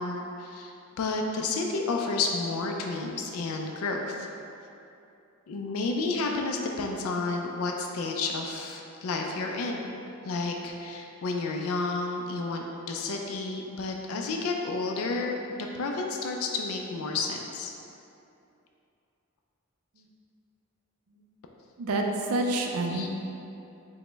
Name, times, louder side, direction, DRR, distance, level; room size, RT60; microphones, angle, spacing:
voice 1, 0.0-4.3 5.5-9.8 10.2-17.7 22.9-23.1, left 3 dB, 75° left, 2 dB, 0.3 m, -31 dB
voice 2, 21.8-23.1, right 2 dB, 80° right, 2 dB, 0.4 m, -28 dB
4.9 x 2.1 x 3.3 m, 2.7 s
head